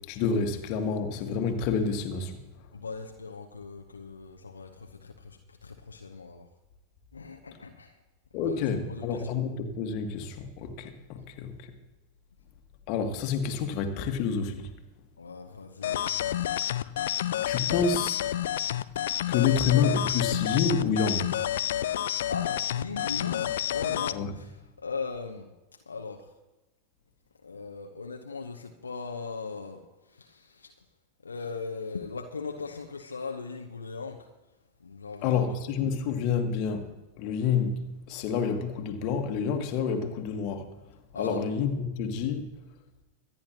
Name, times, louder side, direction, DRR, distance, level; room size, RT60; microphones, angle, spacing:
voice 1, 0.1-2.3 8.3-11.7 12.9-14.7 17.5-18.2 19.3-21.3 24.1-24.3 35.2-36.9 37.2-40.7 41.2-42.5, left 6 dB, 45° left, 1.6 m, -28 dB
voice 2, 2.7-6.5 7.1-8.0 8.3-9.3 15.2-16.5 22.3-26.3 27.4-30.8 31.2-34.3 34.8-35.5 41.1-41.5, left 4 dB, 75° left, 0.9 m, -39 dB
sound 1, 15.8-24.2, left 11 dB, 60° left, 0.4 m, -29 dB
25.0 x 10.0 x 3.0 m
figure-of-eight pair, 90°, 0 cm